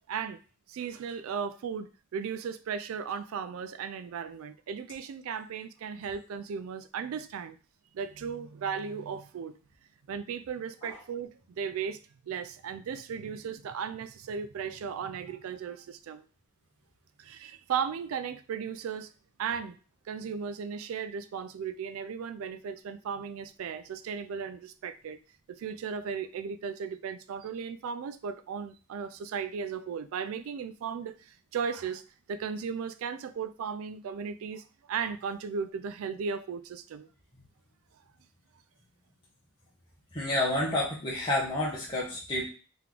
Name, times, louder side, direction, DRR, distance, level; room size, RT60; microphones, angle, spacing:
voice 1, 0.1-0.4 0.7-7.6 7.9-9.6 10.1-12.0 12.2-16.2 17.2-19.1 19.4-19.8 20.1-25.2 25.5-32.0 32.3-37.1, right 6 dB, 70° right, 0.3 m, -36 dB
voice 2, 40.1-42.5, left 1 dB, 20° left, 0.9 m, -29 dB
3.7 x 3.0 x 3.7 m
head